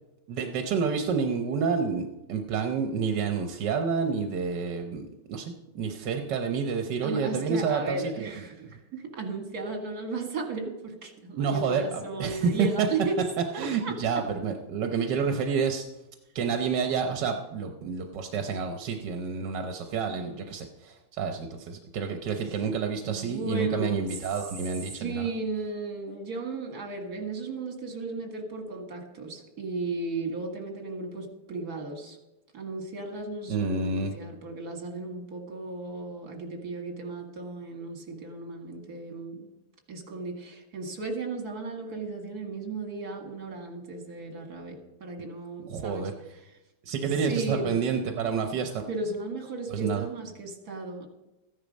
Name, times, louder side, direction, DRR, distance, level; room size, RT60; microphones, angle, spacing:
voice 1, 0.3-8.3 11.4-12.9 13.6-15.8 16.3-25.3 33.5-34.1 45.7-46.1 46.8-48.8 49.7-50.0, right 5 dB, 85° right, 5 dB, 1.6 m, -29 dB
voice 2, 7.0-13.2 13.5-14.2 20.1-20.4 23.0-24.1 25.0-32.2 32.5-39.5 39.9-46.1 47.2-47.7 48.9-51.1, right 3 dB, 60° right, 4 dB, 2.3 m, -35 dB
14.5 x 10.5 x 5.2 m, 0.99 s
omnidirectional pair, 1.8 m